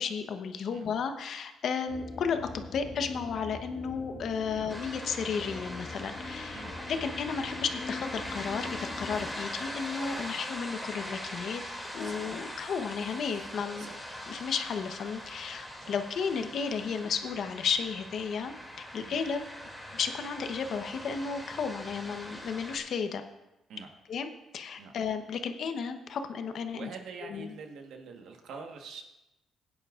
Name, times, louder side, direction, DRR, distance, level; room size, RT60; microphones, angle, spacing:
voice 1, 0.0-11.6 11.9-13.9 14.3-18.5 18.9-19.4 19.9-23.2 24.1-24.3 24.5-26.9 27.2-27.5, left 6 dB, 65° left, 7 dB, 0.9 m, -33 dB
sound 1, 1.9-9.3, left 3 dB, 45° left, 1.7 m, -43 dB
sound 2, 4.7-22.8, left 1 dB, ahead, 2.5 m, -41 dB
voice 2, 6.5-7.0 10.2-10.4 12.0-12.3 13.8-13.9 15.8-15.9 19.0-19.2 23.7-23.9 24.8-25.0 26.7-29.0, right 5 dB, 75° right, 4 dB, 1.3 m, -46 dB
16.5 x 9.6 x 2.5 m, 0.97 s
cardioid pair, 90°, 0 cm